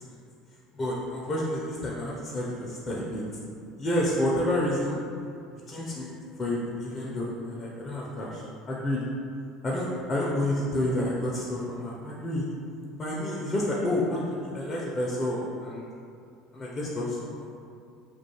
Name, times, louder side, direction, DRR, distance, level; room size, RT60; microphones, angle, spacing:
voice 1, 0.8-3.2 3.8-5.0 5.7-9.0 9.6-12.4 13.0-15.9 16.5-17.5, left 1 dB, 30° left, -4 dB, 0.4 m, -29 dB
2.3 x 2.3 x 2.9 m, 2.4 s
hypercardioid pair, 75°, 0 cm